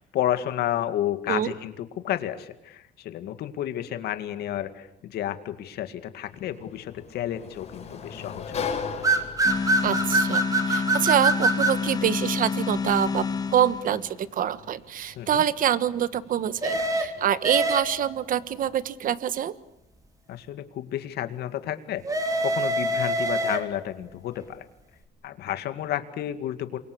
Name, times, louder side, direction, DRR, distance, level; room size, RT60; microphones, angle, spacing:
voice 1, 0.0-8.6 15.2-15.4 20.3-24.7 25.2-26.8, left 12 dB, 70° left, 10 dB, 2.2 m, -31 dB
Sliding door, 6.2-18.9, left 6 dB, 40° left, 5.6 m, -41 dB
sound 1, 9.0-11.8 16.6-18.2 22.0-23.9, right 2 dB, 20° right, 3.5 m, -24 dB
sound 2, 9.4-14.2, left 5 dB, 25° left, 1.2 m, -29 dB
voice 2, 9.8-13.2 13.5-19.5, right 10 dB, 55° right, 15 dB, 1.3 m, -25 dB
28.0 x 23.5 x 8.5 m, 0.82 s
cardioid pair, 110°, 17 cm